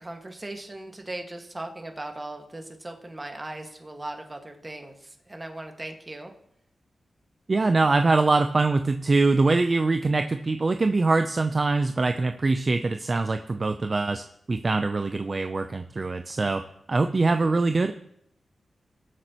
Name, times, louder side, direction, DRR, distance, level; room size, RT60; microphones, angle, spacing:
voice 1, 0.0-6.3, right 1 dB, 25° right, 3 dB, 1.9 m, -38 dB
voice 2, 7.5-14.2 14.5-16.6 16.9-17.9, right 3 dB, 45° right, 7 dB, 0.6 m, -23 dB
20.0 x 7.8 x 3.1 m, 0.74 s
cardioid pair, 55°, 0 cm